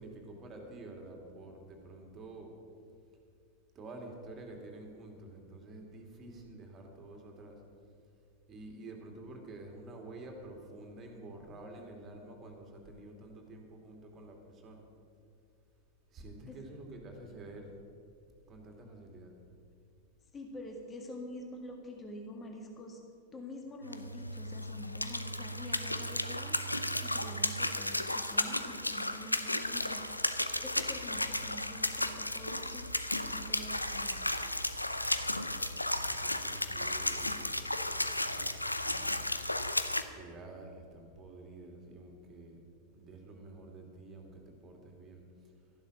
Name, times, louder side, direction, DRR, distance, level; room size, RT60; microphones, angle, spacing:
voice 1, 0.0-2.5 3.7-7.6 8.5-14.9 16.1-17.7 18.5-19.3 35.9-39.2 39.9-42.6 42.9-45.5, right 2 dB, 25° right, 2 dB, 2.7 m, -49 dB
voice 2, 20.3-23.0 23.3-32.9 33.3-34.3, left 1 dB, 20° left, 2 dB, 1.9 m, -47 dB
sound 1, 23.8-40.0, left 1 dB, 85° left, 0.6 m, -34 dB
13.5 x 11.5 x 6.4 m, 2.4 s
figure-of-eight pair, 90°, 0 cm